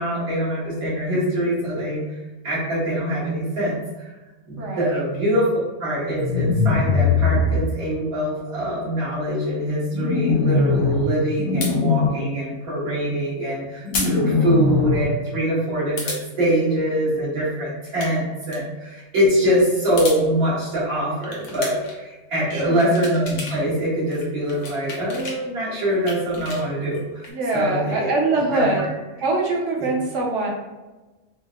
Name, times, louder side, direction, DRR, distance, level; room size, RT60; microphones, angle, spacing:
voice 1, 0.0-2.0 2.4-3.8 4.5-5.5 5.8-13.6 14.1-18.6 19.1-21.8 22.3-27.0 27.5-28.1 28.5-28.9 29.8-29.9, equal, 80° right, -9 dB, 1.9 m, -23 dB
voice 2, 4.6-5.0 22.5-23.0 27.3-28.8 29.2-30.5, right 3 dB, 60° right, -1 dB, 1.0 m, -23 dB
sound 1, 6.2-7.6 9.9-11.0 11.4-12.1 13.8-15.0, left 4 dB, 65° left, 1.0 m, -20 dB
sound 2, 11.6-11.8 13.9-14.1 14.5-14.6 16.0-16.2 17.8-18.1 18.4-18.6 19.8-20.2 21.2-22.0 22.5-23.6 23.9-25.4 25.8-27.3, left 3 dB, 90° left, 1.2 m, -32 dB
4.4 x 2.1 x 2.4 m, 1.1 s
omnidirectional pair, 1.6 m